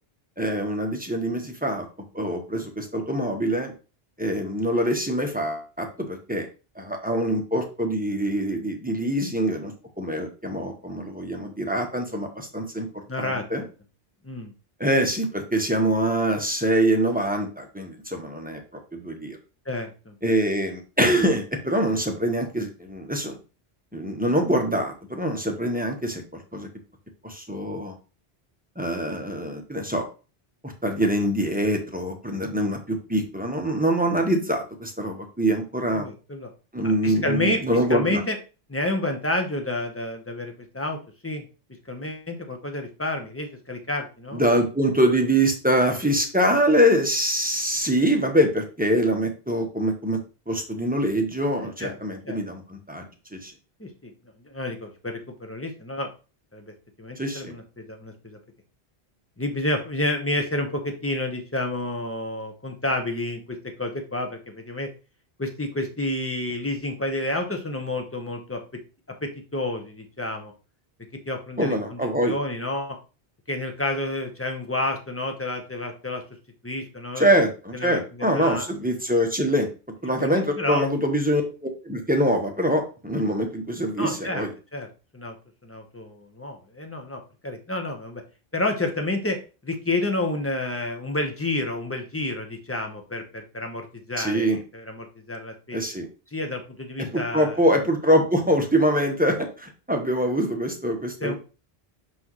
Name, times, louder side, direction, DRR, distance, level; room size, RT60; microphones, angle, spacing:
voice 1, 0.4-1.8 2.1-3.7 4.2-6.5 6.8-12.9 13.2-13.6 14.8-18.6 18.9-19.4 20.2-23.4 23.9-26.7 27.2-28.0 28.8-30.1 30.6-36.1 36.7-38.2 44.3-50.2 50.5-53.5 57.2-57.5 71.6-72.3 77.2-79.7 80.0-84.5 94.2-94.6 95.7-96.1 97.1-101.4, equal, 10° right, 3 dB, 1.1 m, -24 dB
voice 2, 13.1-13.6 14.2-14.5 19.7-20.1 35.9-36.5 36.8-37.6 37.9-38.4 38.7-41.4 41.9-44.4 51.6-51.9 52.2-52.4 53.8-54.1 54.4-56.1 56.5-56.7 57.0-58.4 59.4-64.9 65.4-68.6 69.2-70.5 71.3-73.0 73.5-76.2 76.6-77.3 77.7-78.6 80.2-80.8 84.0-84.4 84.7-84.9 85.1-85.4 85.6-88.2 88.5-95.8 96.3-97.5 101.2-101.4, left 2 dB, 15° left, 4 dB, 1.1 m, -30 dB
6.2 x 6.2 x 3.1 m, 0.33 s
omnidirectional pair, 1.0 m